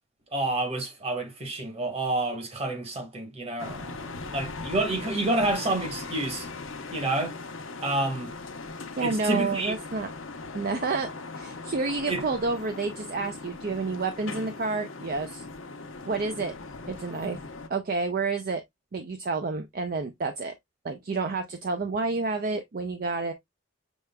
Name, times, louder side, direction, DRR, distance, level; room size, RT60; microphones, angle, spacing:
voice 1, 0.3-6.5 6.9-7.4 7.8-8.3 9.0-9.7 12.1-12.2, right 2 dB, 30° right, 1.4 m, -29 dB
sound 1, 3.6-17.7, left 3 dB, 75° left, 0.8 m, -39 dB
voice 2, 9.0-10.1 10.5-15.4 16.1-16.5 16.9-17.4 17.7-18.6 18.9-20.5 20.8-23.3, right 3 dB, 45° right, 0.5 m, -29 dB
6.2 x 3.3 x 2.2 m
head